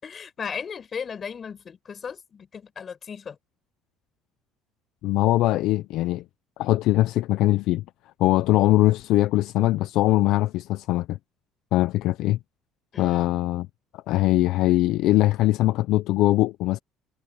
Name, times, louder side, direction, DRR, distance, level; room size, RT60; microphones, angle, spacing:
voice 1, 0.0-3.4 12.9-13.3, left 6 dB, 25° left, 6.8 m, -36 dB
voice 2, 5.0-6.2 6.6-7.8 8.2-11.2 11.7-12.4 13.0-13.7 13.9-16.8, left 16 dB, 60° left, 0.5 m, -21 dB
cardioid pair, 170°, 0 cm